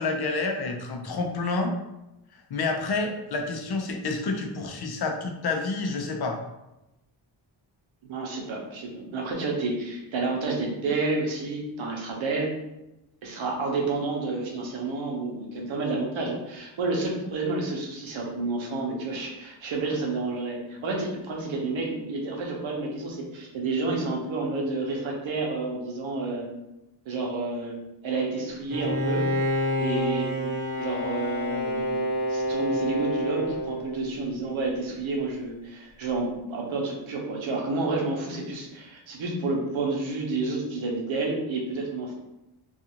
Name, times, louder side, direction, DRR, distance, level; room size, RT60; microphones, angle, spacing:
voice 1, 0.0-1.7 2.5-6.4, left 3 dB, 55° left, 3 dB, 0.6 m, -28 dB
voice 2, 8.0-12.5 13.2-26.5 27.1-27.8 28.0-29.3 29.8-30.4 30.8-32.0 32.3-42.1, right 3 dB, 75° right, -1 dB, 0.8 m, -30 dB
Bowed string instrument, 28.7-34.3, equal, 25° right, 0.8 m, -28 dB
2.4 x 2.4 x 2.8 m, 0.93 s
cardioid pair, 90°, 47 cm